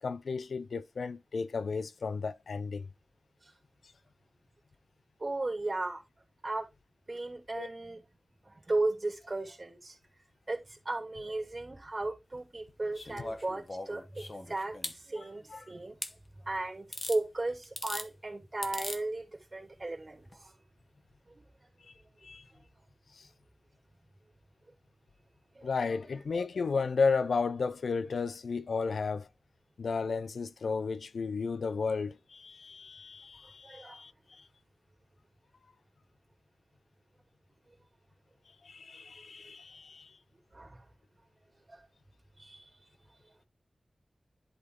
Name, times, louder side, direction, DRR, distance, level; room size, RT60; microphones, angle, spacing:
voice 1, 0.0-2.9 7.5-7.7 15.2-15.3 15.5-15.6 22.2-22.4 23.1-23.3 25.6-29.3 29.8-34.5 38.6-40.2, left 4 dB, 85° left, 0.4 m, -33 dB
voice 2, 5.2-6.0 6.4-6.7 7.1-8.0 8.7-10.0 10.5-14.7 15.0-16.0 16.5-20.5 21.3-21.4 25.6-25.7 33.6-34.0 40.5-40.8 42.4-42.7, right 2 dB, 35° right, 2.5 m, -35 dB
sound 1, 12.9-15.0 16.0-16.1 16.9-17.2 17.6-18.1 18.6-19.0 20.3-20.4, left 2 dB, 35° left, 1.2 m, -40 dB
11.0 x 3.9 x 3.7 m
wide cardioid pair, 105°, 0 cm